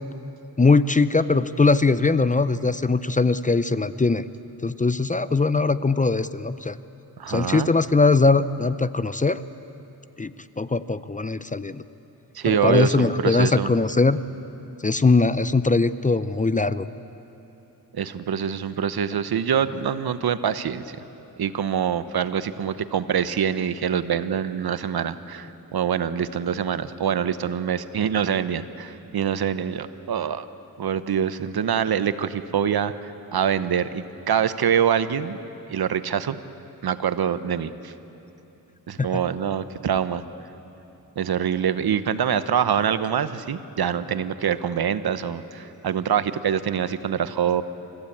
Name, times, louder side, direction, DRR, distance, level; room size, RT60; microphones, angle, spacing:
voice 1, 0.6-4.2 4.6-6.8 7.3-9.4 10.2-10.3 10.6-11.8 12.5-14.2 14.8-16.9 39.0-39.1, left 3 dB, 20° left, 14 dB, 0.6 m, -21 dB
voice 2, 7.2-7.7 12.3-13.7 17.9-21.0 21.4-30.5 30.8-35.4 35.7-36.4 36.8-37.9 38.9-40.2 41.2-47.6, right 8 dB, 75° right, 12 dB, 0.9 m, -25 dB
29.0 x 15.5 x 8.6 m, 3.0 s
cardioid pair, 75°, 38 cm